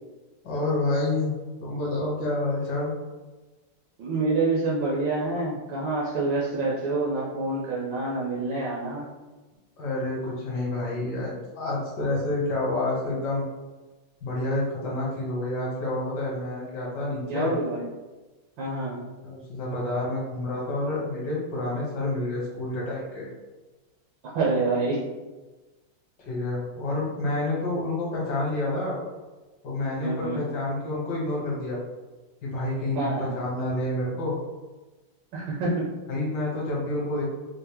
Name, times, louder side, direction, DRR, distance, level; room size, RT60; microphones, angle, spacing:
voice 1, 0.4-1.3 1.6-2.9 9.8-13.4 14.2-17.5 19.2-23.3 26.2-29.0 29.6-31.8 32.4-34.3 36.1-37.2, left 2 dB, 60° left, -4 dB, 1.5 m, -28 dB
voice 2, 4.0-9.1 17.3-17.8 18.6-19.0 24.3-25.1 30.0-30.4 32.9-33.3 35.3-35.8, right 3 dB, 70° right, -5 dB, 1.4 m, -27 dB
4.4 x 2.0 x 3.4 m, 1.2 s
omnidirectional pair, 2.4 m